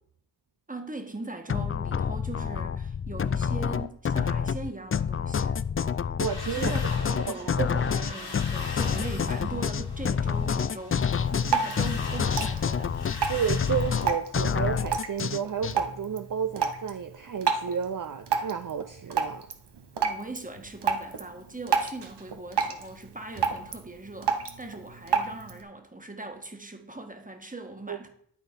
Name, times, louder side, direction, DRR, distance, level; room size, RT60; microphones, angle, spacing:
voice 1, 0.7-5.6 6.5-13.0 20.0-28.1, right 2 dB, 20° right, 1.5 m, -40 dB
sound 1, 1.5-15.8, left 7 dB, 35° left, 0.4 m, -28 dB
sound 2, 6.2-14.1, left 3 dB, 65° left, 1.8 m, -41 dB
voice 2, 6.2-6.8 7.3-7.7 13.3-19.4 27.9-28.0, right 7 dB, 50° right, 0.6 m, -31 dB
Drip, 11.1-25.6, right 6 dB, 85° right, 1.0 m, -32 dB
11.5 x 4.1 x 5.3 m
cardioid pair, 40°, 40 cm